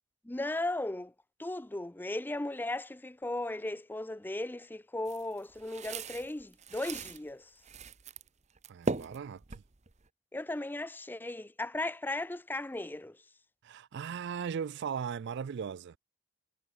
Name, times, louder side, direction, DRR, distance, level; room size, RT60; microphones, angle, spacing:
voice 1, 0.2-1.1 1.4-7.5 10.3-13.2, left 2 dB, 10° left, 0.4 m, -36 dB
sound 1, 5.1-7.2 7.6-8.3 8.6-10.1, right 3 dB, 30° right, 0.8 m, -38 dB
voice 2, 8.7-9.6 13.6-16.0, right 7 dB, 55° right, 0.3 m, -38 dB
head